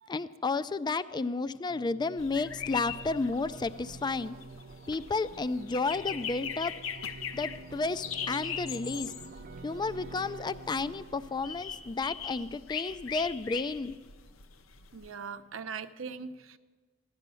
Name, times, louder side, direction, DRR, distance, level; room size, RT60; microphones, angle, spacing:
voice 1, 0.1-4.4 4.9-6.8 7.3-9.1 9.6-14.0, left 3 dB, 20° left, 14 dB, 0.4 m, -32 dB
sound 1, 1.7-12.7, right 4 dB, 45° right, 0.4 m, -48 dB
sound 2, 2.2-15.1, left 7 dB, 80° left, 0.7 m, -40 dB
voice 2, 14.9-16.6, right 5 dB, 75° right, 9 dB, 0.8 m, -40 dB
16.0 x 11.5 x 6.9 m, 1.4 s
head